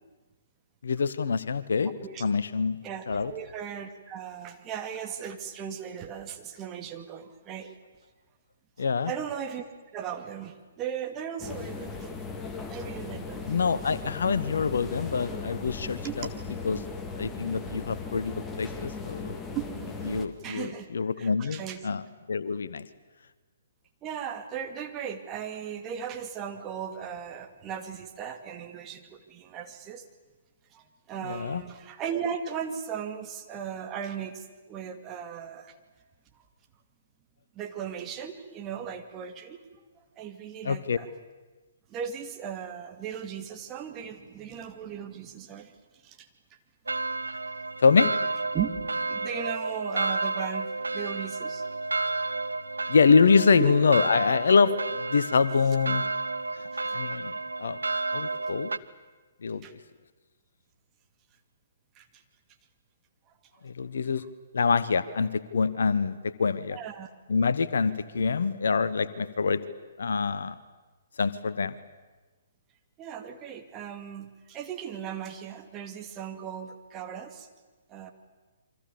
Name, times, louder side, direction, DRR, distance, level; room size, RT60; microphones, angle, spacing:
voice 1, 0.8-1.9 2.2-2.8 3.1-3.3 8.8-9.1 13.5-16.3 16.6-16.8 17.2-19.4 20.1-22.0 22.3-22.9 31.2-31.6 40.6-41.0 47.8-48.1 52.9-56.1 56.5-57.8 58.1-58.7 59.4-59.6 63.6-64.2 64.5-66.8 67.3-69.6 70.0-70.5 71.2-71.7, left 5 dB, 60° left, 15 dB, 1.2 m, -25 dB
voice 2, 2.8-7.8 9.1-9.6 9.9-12.1 12.7-13.5 14.1-14.2 16.0-16.1 19.5-20.1 20.4-20.9 21.2-21.8 24.0-30.0 30.7-35.8 37.5-39.6 40.0-41.1 41.9-45.7 46.0-46.3 47.3-47.4 48.5-48.7 49.1-51.6 53.6-53.7 56.7-56.8 59.6-59.7 62.0-62.1 66.7-67.1 73.0-77.5 77.9-78.1, right 8 dB, 20° right, 4 dB, 2.3 m, -37 dB
sound 1, 11.4-20.3, left 4 dB, 10° left, 2.0 m, -38 dB
sound 2, 46.9-58.8, right 3 dB, 75° right, 1.0 m, -31 dB
28.5 x 24.5 x 7.2 m, 1.3 s
figure-of-eight pair, 125°, 0 cm